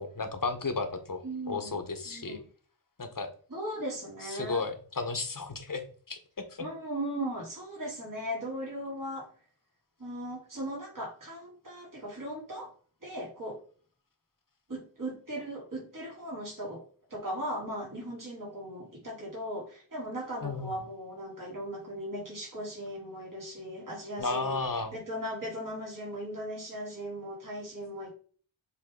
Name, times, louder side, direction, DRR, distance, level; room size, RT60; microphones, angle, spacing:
voice 1, 0.0-1.2 1.5-2.4 3.0-3.3 4.3-6.2 6.5-6.7 20.4-20.8 24.2-24.9, left 3 dB, 45° left, 6 dB, 1.4 m, -33 dB
voice 2, 1.2-1.8 2.1-2.4 3.5-4.6 6.6-9.3 10.0-12.7 13.0-13.6 14.7-16.8 17.1-24.6 24.9-28.1, equal, 45° right, -4 dB, 3.4 m, -38 dB
7.2 x 3.8 x 3.9 m, 0.43 s
wide cardioid pair, 55°, 46 cm